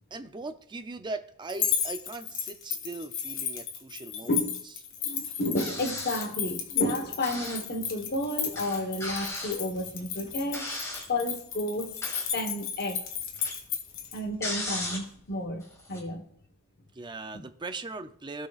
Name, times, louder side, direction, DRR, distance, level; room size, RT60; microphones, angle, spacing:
voice 1, 0.1-4.4 5.1-5.4 16.9-18.5, right 3 dB, 20° right, 9 dB, 0.5 m, -39 dB
sound 1, 1.5-14.2, left 8 dB, 65° left, 1.5 m, -34 dB
voice 2, 4.3-4.6 5.0-10.6 11.1-13.0 14.1-16.3, left 1 dB, 50° left, 5 dB, 1.2 m, -31 dB
sound 2, 5.5-6.4 7.2-7.7 8.0-8.1 8.5-11.1 11.8-12.5 12.8-15.3 15.6-16.0, left 1 dB, 15° left, 1.7 m, -37 dB
16.0 x 5.7 x 2.4 m, 0.65 s
head